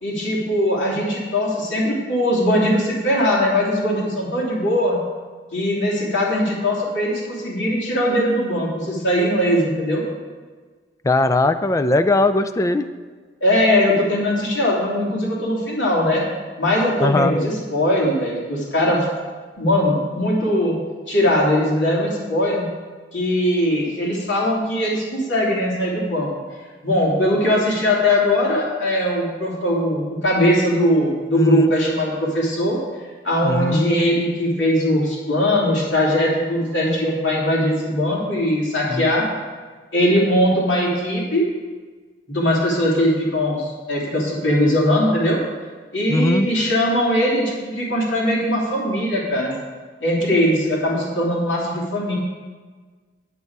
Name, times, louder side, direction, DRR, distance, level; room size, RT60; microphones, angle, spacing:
voice 1, 0.0-5.0 5.5-10.0 13.4-16.2 16.6-19.1 19.6-20.8 21.1-22.7 23.1-26.3 26.8-32.8 33.2-39.3 39.9-41.4 42.3-45.4 45.9-49.5 50.0-52.1, left 1 dB, 85° left, -4 dB, 2.8 m, -20 dB
voice 2, 11.0-12.8 17.0-17.4 31.3-31.7 33.4-33.8 38.9-39.1 46.1-46.5, left 2 dB, 15° left, 9 dB, 0.4 m, -19 dB
9.7 x 8.0 x 4.7 m, 1.4 s
head